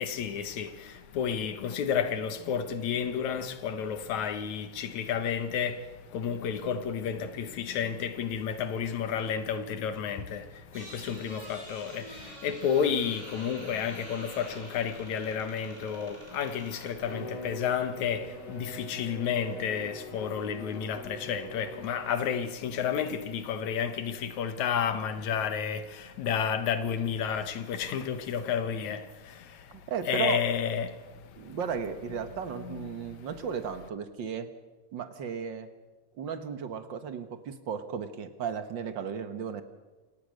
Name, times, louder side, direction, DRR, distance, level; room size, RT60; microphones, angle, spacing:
voice 1, 0.0-31.6 32.6-33.3, left 7 dB, 70° left, 2.6 m, -31 dB
sound 1, 10.7-16.9, right 1 dB, 20° right, 6.7 m, -47 dB
Bowed string instrument, 17.0-22.7, left 2 dB, 55° left, 4.5 m, -43 dB
voice 2, 29.7-30.4 31.3-34.5 34.9-35.7 36.2-39.6, right 7 dB, 50° right, 1.5 m, -35 dB
27.5 x 18.0 x 6.5 m
omnidirectional pair, 3.5 m